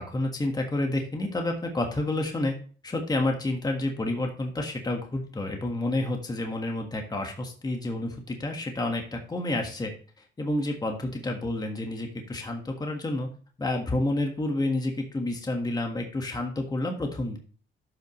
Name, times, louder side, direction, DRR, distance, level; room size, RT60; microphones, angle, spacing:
voice 1, 0.0-2.5 2.8-9.9 10.2-13.3 13.6-17.4, left 2 dB, 20° left, 2 dB, 1.6 m, -29 dB
11.5 x 5.7 x 3.2 m, 0.41 s
cardioid pair, 90°, 20 cm